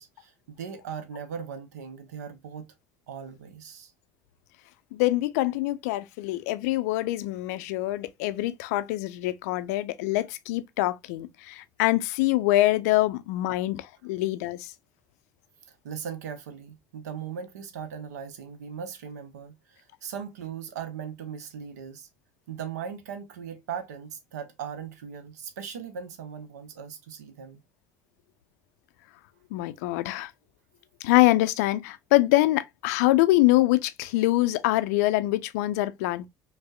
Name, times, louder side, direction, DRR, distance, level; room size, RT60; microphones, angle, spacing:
voice 1, 0.0-2.7 3.1-3.9 15.7-22.1 22.5-27.6, right 7 dB, 70° right, 0.6 m, -39 dB
voice 2, 4.9-14.7 29.5-30.3 31.0-36.3, left 17 dB, 65° left, 0.4 m, -24 dB
5.1 x 2.0 x 2.3 m
figure-of-eight pair, 60°, 9 cm